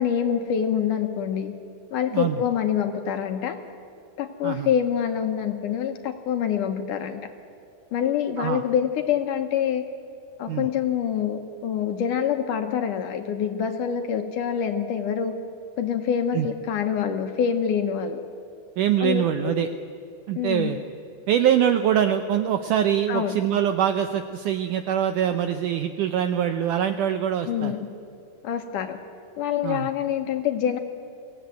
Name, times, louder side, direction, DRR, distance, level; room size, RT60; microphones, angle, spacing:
voice 1, 0.0-1.5 1.9-3.6 4.2-7.3 7.9-9.8 10.4-15.4 15.8-18.2 19.0-19.7 20.4-20.7 23.1-23.4 27.5-27.9 28.4-29.0 29.4-30.8, left 8 dB, 70° left, 6 dB, 2.1 m, -26 dB
voice 2, 18.8-19.7 20.3-20.8 21.3-27.7 29.6-29.9, right 10 dB, 85° right, 8 dB, 1.8 m, -23 dB
23.5 x 16.5 x 9.3 m, 2.6 s
omnidirectional pair, 4.5 m